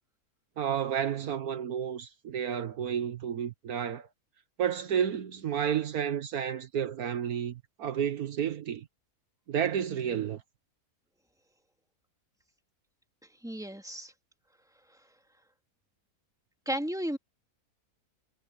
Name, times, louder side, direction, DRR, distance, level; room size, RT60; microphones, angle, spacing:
voice 1, 0.6-4.1 4.6-8.9 9.5-10.4, right 8 dB, 70° right, 1.5 m, -31 dB
voice 2, 13.2-14.1 14.9-15.1 16.7-17.2, equal, ahead, 2.8 m, -34 dB
omnidirectional pair, 1.7 m